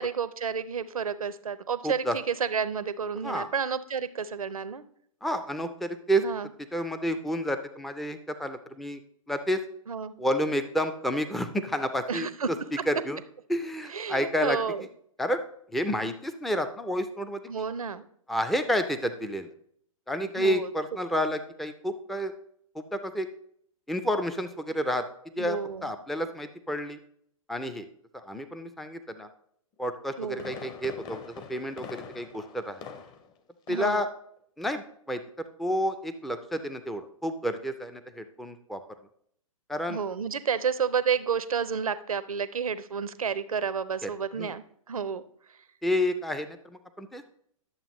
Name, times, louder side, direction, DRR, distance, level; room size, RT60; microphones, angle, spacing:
voice 1, 0.0-4.8 6.2-6.5 9.9-10.1 12.1-12.5 13.9-14.9 17.5-18.0 20.4-20.7 25.4-25.9 30.2-30.5 33.7-34.1 39.9-45.2, right 6 dB, 85° right, 14 dB, 0.7 m, -30 dB
voice 2, 1.8-2.2 3.2-3.5 5.2-6.2 6.7-9.0 9.3-9.6 10.2-12.3 12.9-13.2 13.5-14.6 15.2-15.4 15.7-17.4 18.3-19.5 20.1-22.3 22.9-23.3 23.9-25.0 25.4-27.0 27.5-27.9 28.1-29.3 29.8-31.2 31.5-32.8 33.7-34.1 34.6-35.2 35.6-38.8 39.7-40.0 44.0-44.1 44.4-44.5 45.8-47.2, equal, ahead, 9 dB, 0.4 m, -30 dB
Fireworks, 30.1-33.4 33.7-34.0 34.4-34.5, left 6 dB, 25° left, 0.8 m, -43 dB
11.0 x 6.9 x 3.0 m, 0.67 s
hypercardioid pair, 120°, 18 cm